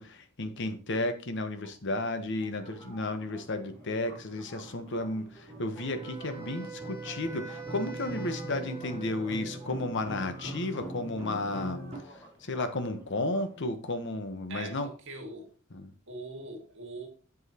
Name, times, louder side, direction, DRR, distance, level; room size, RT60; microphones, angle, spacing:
voice 1, 0.0-11.8 12.1-14.9 15.7-15.9, left 2 dB, 60° left, 1.0 m, -33 dB
sound 1, 1.3-1.4 1.9-2.1 2.5-12.0, right 1 dB, 30° right, 3.1 m, -43 dB
sound 2, 2.4-13.6, equal, 20° left, 2.7 m, -53 dB
Wind instrument woodwind instrument, 5.7-9.8, right 5 dB, 10° right, 2.2 m, -44 dB
voice 2, 14.5-15.5 16.1-17.1, right 2 dB, 65° right, 1.9 m, -42 dB
8.1 x 7.3 x 2.9 m
head